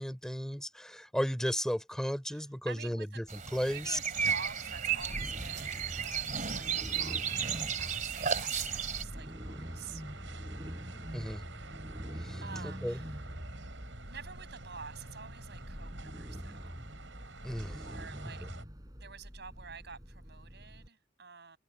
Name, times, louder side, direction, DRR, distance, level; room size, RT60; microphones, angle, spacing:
voice 1, 0.0-4.0 11.1-11.4 12.2-12.4 12.8-13.0 17.4-17.9 18.4-18.5, equal, 5° left, 3.4 m, -34 dB
voice 2, 2.3-3.2 3.6-7.5 7.8-10.0 12.4-13.2 14.1-16.8 17.8-18.5 19.0-21.6, right 6 dB, 65° right, 5.6 m, -48 dB
sound 1, 3.3-9.0, right 7 dB, 45° right, 2.6 m, -34 dB
sound 2, 4.1-18.6, right 2 dB, 80° right, 6.0 m, -49 dB
sound 3, 4.9-20.9, equal, 20° right, 7.7 m, -45 dB
head